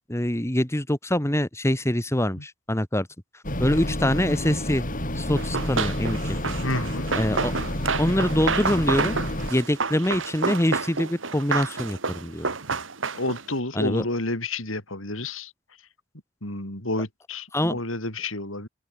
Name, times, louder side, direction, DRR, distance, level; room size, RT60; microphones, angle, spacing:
voice 1, 0.1-3.1 3.6-4.8 5.1-6.4 7.1-7.5 8.0-9.1 9.5-12.5 13.7-14.0 17.5-17.8, left 1 dB, 15° left, 2.0 m, -24 dB
sound 1, 3.4-9.5, left 1 dB, 40° left, 7.0 m, -29 dB
Run, 5.4-13.5, right 4 dB, 70° right, 2.5 m, -29 dB
voice 2, 6.6-7.1 13.1-15.5 16.4-18.7, left 2 dB, 80° left, 7.8 m, -30 dB
open air
head